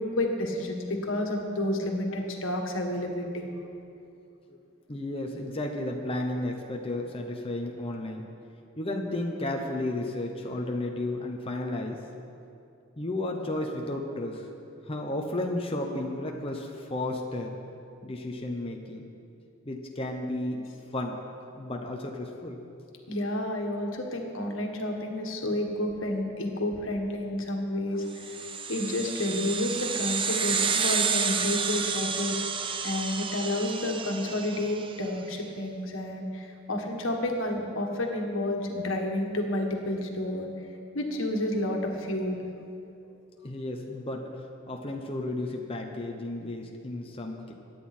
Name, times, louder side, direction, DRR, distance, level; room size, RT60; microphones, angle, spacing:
voice 1, 0.0-3.5 23.1-28.4 28.7-32.4 32.8-40.5 40.9-42.4, left 1 dB, 80° left, 2 dB, 1.7 m, -30 dB
voice 2, 4.9-8.2 8.8-12.0 13.0-14.5 14.9-17.5 18.0-19.0 19.7-20.7 20.9-21.2 21.5-22.6 43.4-44.3 44.7-47.5, left 1 dB, 30° left, 1 dB, 1.0 m, -33 dB
sound 1, 28.2-35.0, right 6 dB, 25° right, 0.6 m, -30 dB
23.0 x 9.5 x 4.4 m, 2.6 s
head